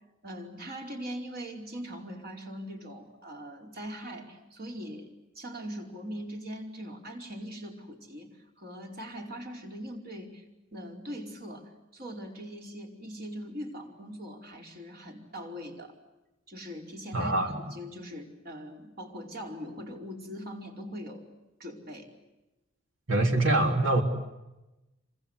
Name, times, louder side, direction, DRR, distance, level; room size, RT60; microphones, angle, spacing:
voice 1, 0.2-10.4 10.7-15.9 16.5-21.3 21.6-22.1, equal, 45° right, 2 dB, 4.8 m, -41 dB
voice 2, 17.1-17.6 23.1-24.0, right 2 dB, 65° right, 3 dB, 3.7 m, -24 dB
28.0 x 25.0 x 8.1 m, 0.99 s
head